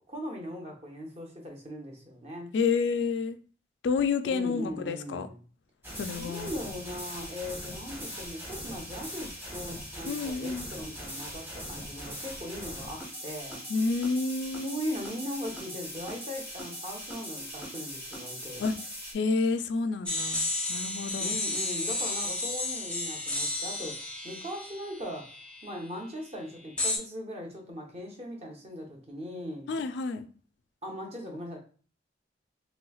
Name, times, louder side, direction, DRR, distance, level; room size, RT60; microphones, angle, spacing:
voice 1, 0.1-2.5 4.2-5.4 6.2-13.6 14.6-18.6 21.2-25.4 25.6-29.7 30.8-31.6, equal, 35° right, 1 dB, 0.8 m, -39 dB
voice 2, 2.5-3.4 3.8-5.3 5.9-6.5 10.0-10.7 13.7-14.8 18.6-18.7 19.1-21.4 29.7-30.3, left 4 dB, 70° left, 9 dB, 0.3 m, -29 dB
sound 1, 5.8-19.1, equal, 10° right, 1.0 m, -40 dB
sound 2, 20.1-25.8 26.8-27.0, left 2 dB, 5° left, 0.6 m, -32 dB
3.2 x 3.1 x 2.3 m, 0.40 s
head